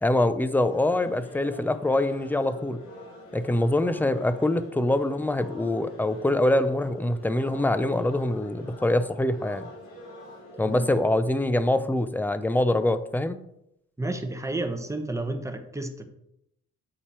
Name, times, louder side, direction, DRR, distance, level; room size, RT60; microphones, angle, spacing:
voice 1, 0.0-2.8 3.3-9.7 10.6-13.4, left 1 dB, 5° left, 12 dB, 0.5 m, -24 dB
sound 1, 0.7-10.9, left 1 dB, 85° left, 2.9 m, -46 dB
voice 2, 14.0-16.1, right 2 dB, 10° right, 5 dB, 1.0 m, -31 dB
8.6 x 4.3 x 4.4 m, 0.78 s
cardioid pair, 90°, 30 cm